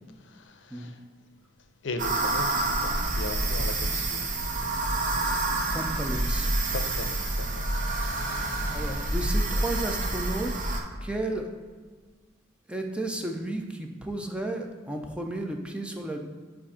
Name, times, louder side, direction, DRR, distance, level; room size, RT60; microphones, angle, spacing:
voice 1, 0.2-0.9 1.8-4.3 6.7-7.6, left 2 dB, 70° left, 8 dB, 0.5 m, -37 dB
sound 1, 2.0-10.8, right 2 dB, 45° right, 0.7 m, -28 dB
voice 2, 5.7-6.5 8.7-10.7 11.0-11.5 12.7-16.2, right 1 dB, 5° right, 3 dB, 0.4 m, -33 dB
7.2 x 2.5 x 5.5 m, 1.5 s
head